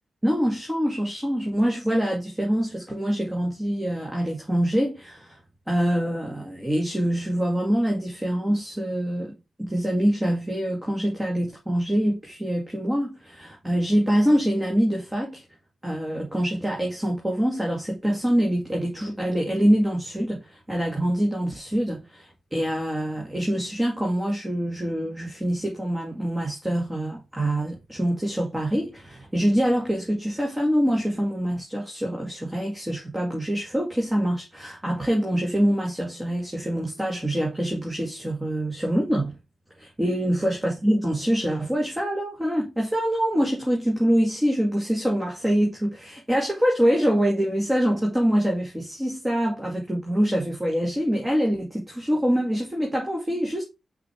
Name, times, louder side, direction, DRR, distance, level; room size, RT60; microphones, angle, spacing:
voice 1, 0.2-5.4 5.7-9.3 9.6-15.4 15.8-39.3 39.8-53.6, equal, 15° right, 2.2 m, -25 dB
6.2 x 5.1 x 3.5 m
cardioid pair, 75°, 0 cm